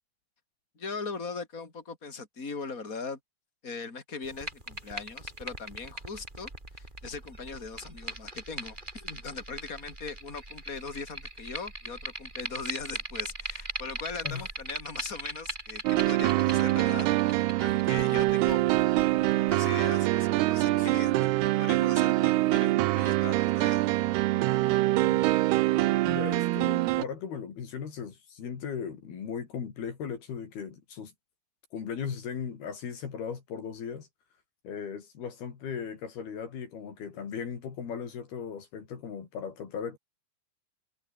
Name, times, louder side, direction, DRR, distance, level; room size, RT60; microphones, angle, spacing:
voice 1, 0.7-3.2 3.6-24.0, left 4 dB, 20° left, 5.1 m, -40 dB
sound 1, 4.2-19.5, right 2 dB, 10° right, 4.0 m, -40 dB
sound 2, 15.9-27.0, right 18 dB, 80° right, 2.8 m, -25 dB
voice 2, 25.0-25.3 26.0-31.1 31.7-34.1 34.6-40.0, left 7 dB, 70° left, 5.4 m, -37 dB
omnidirectional pair, 4.7 m